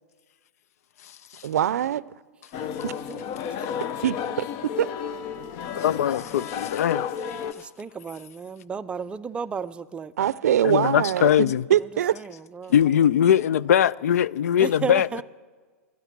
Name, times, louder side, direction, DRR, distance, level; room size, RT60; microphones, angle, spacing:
voice 1, 1.4-2.0 2.8-2.9 4.0-4.9 10.2-12.2, right 10 dB, 80° right, 0.5 m, -23 dB
sound 1, 2.5-7.5, left 8 dB, 40° left, 0.7 m, -32 dB
voice 2, 5.8-7.1 10.6-11.6 12.7-15.1, left 9 dB, 75° left, 0.4 m, -21 dB
voice 3, 7.5-10.1 12.1-12.7 14.6-15.2, right 6 dB, 15° right, 0.4 m, -34 dB
16.5 x 12.5 x 6.0 m
hypercardioid pair, 130°, 8 cm